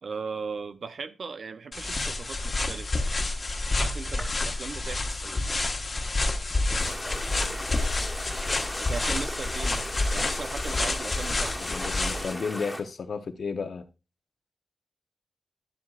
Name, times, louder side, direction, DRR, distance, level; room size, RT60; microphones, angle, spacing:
voice 1, 0.0-3.2 3.8-5.7 6.4-7.7 8.8-12.3, right 5 dB, 65° right, 0.7 m, -39 dB
sound 1, 1.7-12.3, left 2 dB, 35° left, 1.3 m, -29 dB
sound 2, 4.0-12.0, right 1 dB, 30° right, 3.0 m, -48 dB
sound 3, 6.8-12.8, left 1 dB, ahead, 2.0 m, -37 dB
voice 2, 11.6-13.9, left 5 dB, 65° left, 0.9 m, -33 dB
11.0 x 11.0 x 2.5 m
wide cardioid pair, 110°, 0 cm